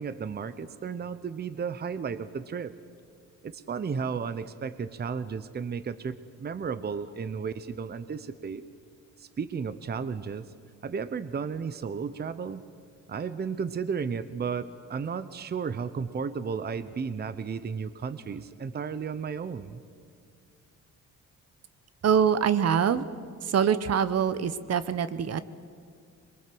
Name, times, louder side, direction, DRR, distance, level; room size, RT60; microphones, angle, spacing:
voice 1, 0.0-2.7 3.4-8.6 9.2-10.5 10.8-12.6 13.1-19.8, right 6 dB, 35° right, 13 dB, 0.8 m, -33 dB
voice 2, 22.0-23.1 23.4-25.4, right 7 dB, 55° right, 14 dB, 1.0 m, -24 dB
22.0 x 22.0 x 7.8 m, 2.3 s
cardioid pair, 90°, 30 cm